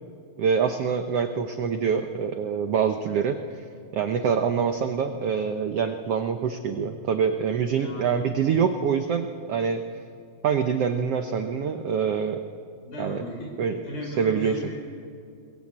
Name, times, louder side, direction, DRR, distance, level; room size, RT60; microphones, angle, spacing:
voice 1, 0.4-3.6 3.9-9.8 10.4-12.4 13.0-13.2 13.6-13.8 14.1-14.7, right 6 dB, 90° right, 7 dB, 1.3 m, -25 dB
voice 2, 7.8-8.3 12.8-14.9, equal, 85° left, -1 dB, 7.2 m, -37 dB
22.5 x 21.5 x 8.7 m, 2.4 s
omnidirectional pair, 4.2 m